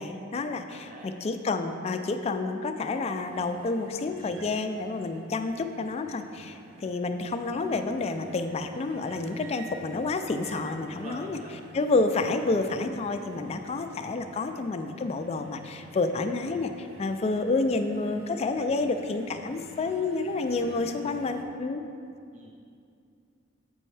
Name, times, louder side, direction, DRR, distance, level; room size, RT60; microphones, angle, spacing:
voice 1, 0.0-11.4 11.7-21.8, left 3 dB, 35° left, 7 dB, 0.3 m, -29 dB
voice 2, 0.7-1.1 10.9-11.6 18.9-19.1 22.3-22.5, right 1 dB, 40° right, -2 dB, 0.6 m, -45 dB
sound 1, 3.1-21.4, right 2 dB, 80° right, 0.6 m, -50 dB
7.6 x 5.4 x 3.2 m, 2.4 s
head